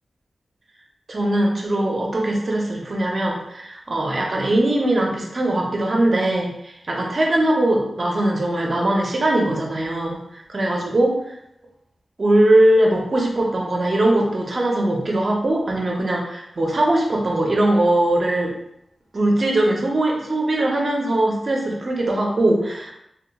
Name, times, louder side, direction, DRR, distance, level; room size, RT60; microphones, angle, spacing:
voice 1, 1.1-10.2 10.5-11.1 12.2-18.5 19.1-22.9, right 1 dB, 50° right, -1 dB, 0.6 m, -20 dB
2.9 x 2.2 x 2.2 m, 0.78 s
wide cardioid pair, 80°, 0 cm